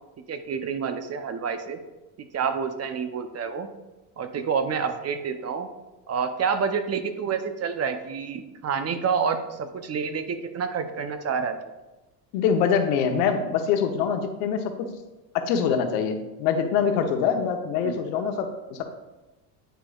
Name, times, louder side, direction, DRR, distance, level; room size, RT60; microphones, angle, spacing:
voice 1, 0.3-1.8 2.3-3.7 4.2-5.7 6.1-11.6 17.8-18.0, right 6 dB, 35° right, 9 dB, 0.6 m, -28 dB
voice 2, 12.3-14.7 15.3-18.8, left 7 dB, 85° left, 6 dB, 0.9 m, -24 dB
9.0 x 4.8 x 2.3 m, 1.1 s
supercardioid pair, 85°, 47 cm